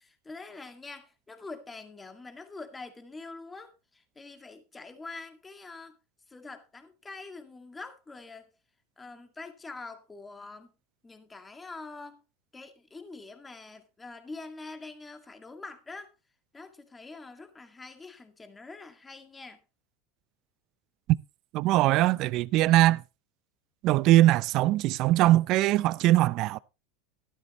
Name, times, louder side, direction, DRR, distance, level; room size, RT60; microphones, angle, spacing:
voice 1, 0.0-6.0 6.3-8.5 9.0-10.7 11.0-12.2 12.5-16.1 16.5-19.6, left 3 dB, 15° left, 2.0 m, -45 dB
voice 2, 21.5-23.0 23.8-26.6, right 16 dB, 55° right, 0.5 m, -21 dB
13.0 x 12.0 x 3.0 m
hypercardioid pair, 100°, 0 cm